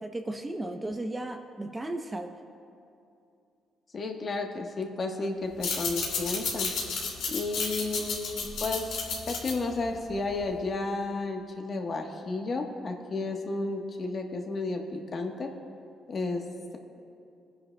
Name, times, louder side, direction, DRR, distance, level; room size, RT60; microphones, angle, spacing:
voice 1, 0.0-2.3, right 1 dB, 20° right, 5 dB, 0.7 m, -35 dB
voice 2, 3.9-6.7 7.3-15.5 16.1-16.4, left 3 dB, 45° left, 3 dB, 1.2 m, -32 dB
sound 1, 5.5-10.6, left 4 dB, 90° left, 2.3 m, -33 dB
21.5 x 10.5 x 2.2 m, 2.7 s
cardioid pair, 90°, 0 cm